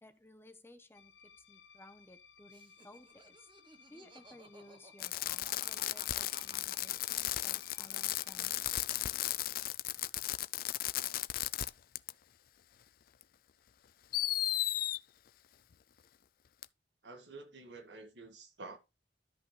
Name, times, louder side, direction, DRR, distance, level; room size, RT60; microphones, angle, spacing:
voice 1, 0.0-3.5 3.9-8.8, left 1 dB, 15° left, 1.0 m, -58 dB
sound 1, 0.9-8.4, left 6 dB, 90° left, 0.9 m, -61 dB
Laughter, 2.5-8.3 8.5-9.3, right 3 dB, 30° right, 1.1 m, -58 dB
Fireworks, 5.0-11.7 12.0-12.1 13.2-13.3 14.1-15.0 16.6-16.7, left 14 dB, 55° left, 0.4 m, -35 dB
voice 2, 17.0-18.8, right 3 dB, 85° right, 2.1 m, -49 dB
13.0 x 5.7 x 3.3 m
head